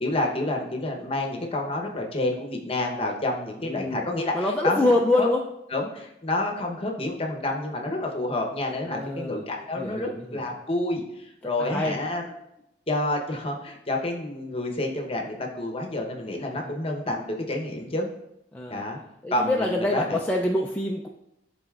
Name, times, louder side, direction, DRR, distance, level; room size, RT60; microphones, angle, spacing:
voice 1, 0.0-4.8 5.2-5.3 5.7-12.2 12.9-18.1 18.7-19.0 19.3-20.2, left 2 dB, 30° left, 1 dB, 0.8 m, -29 dB
voice 2, 3.6-4.1 4.3-5.4 8.9-9.4 9.8-10.5 11.6-12.0 18.5-18.8 19.2-21.1, left 2 dB, 10° left, -1 dB, 0.3 m, -25 dB
10.5 x 4.0 x 2.4 m, 0.86 s
head